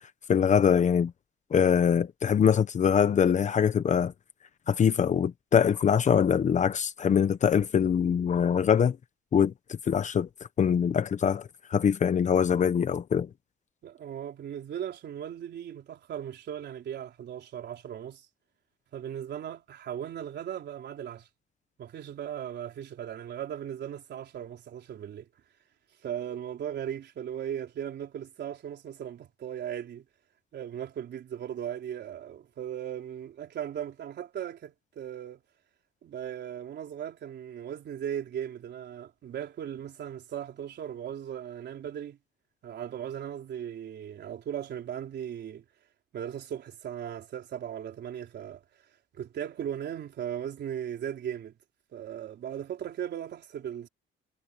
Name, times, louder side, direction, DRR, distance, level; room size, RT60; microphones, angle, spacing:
voice 1, 0.3-1.1 1.5-4.1 4.7-9.0 9.3-10.3 10.6-13.3, left 7 dB, 35° left, 0.9 m, -23 dB
voice 2, 13.8-18.3 18.9-21.3 21.8-25.3 26.0-30.0 30.5-35.4 36.0-42.2 42.6-45.6 46.1-48.6 49.1-51.5 51.9-53.9, right 9 dB, 55° right, 4.1 m, -37 dB
cardioid pair, 170°, 21 cm